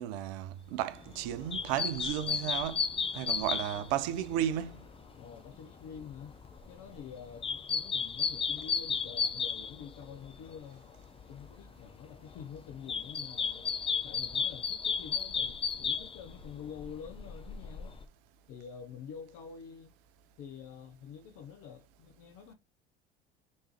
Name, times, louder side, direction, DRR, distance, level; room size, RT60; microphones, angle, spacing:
voice 1, 0.0-4.8, right 11 dB, 60° right, 0.6 m, -34 dB
sound 1, 0.9-10.6 10.8-11.8 12.1-18.0, left 6 dB, 20° left, 0.5 m, -34 dB
voice 2, 5.2-6.3 6.7-10.9 11.3-13.7 14.0-17.9 18.5-19.9 20.4-22.5, left 7 dB, 50° left, 0.7 m, -47 dB
3.3 x 3.2 x 3.1 m
hypercardioid pair, 70°, 30 cm